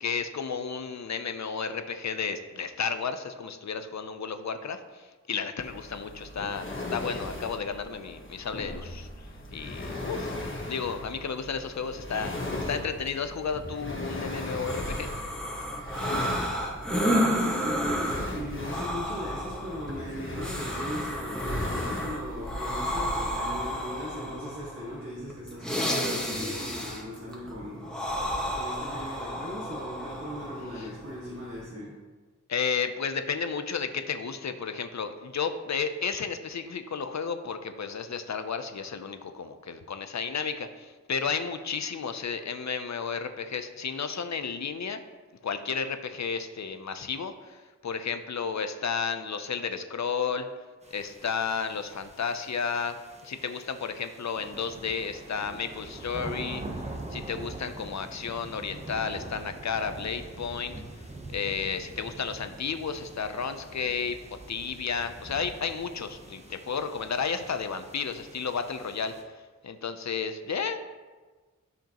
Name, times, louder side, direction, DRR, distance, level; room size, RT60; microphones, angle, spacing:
voice 1, 0.0-9.1 9.5-10.4 10.7-12.4 12.6-15.1 30.8-30.9 32.5-45.0 45.4-50.5 50.9-53.0 53.2-56.6 57.1-60.7 61.3-64.2 64.5-70.8, left 6 dB, 65° left, 9 dB, 0.6 m, -32 dB
sound 1, 5.6-22.6, left 2 dB, 40° left, 1.3 m, -38 dB
sound 2, 14.7-31.7, equal, 5° left, 1.5 m, -32 dB
voice 2, 16.9-32.0, equal, 50° right, -6 dB, 1.7 m, -38 dB
sound 3, 50.8-69.2, right 2 dB, 20° right, 0.9 m, -44 dB
12.0 x 5.0 x 3.0 m, 1.3 s
wide cardioid pair, 60°, 30 cm